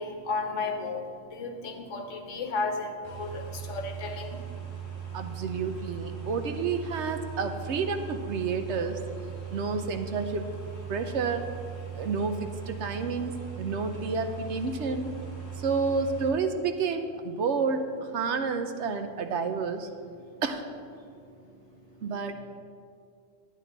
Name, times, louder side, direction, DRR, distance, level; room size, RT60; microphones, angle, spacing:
voice 1, 0.0-4.4 21.7-21.8, left 3 dB, 75° left, 5 dB, 1.3 m, -34 dB
sound 1, 3.0-16.3, right 8 dB, 20° left, 2.3 m, -39 dB
voice 2, 5.1-9.0 9.5-10.5 10.9-11.5 12.0-15.1 15.6-19.9 20.4-20.7 22.0-22.3, right 4 dB, 70° right, 7 dB, 1.0 m, -30 dB
11.0 x 9.6 x 3.9 m, 2.2 s
omnidirectional pair, 1.3 m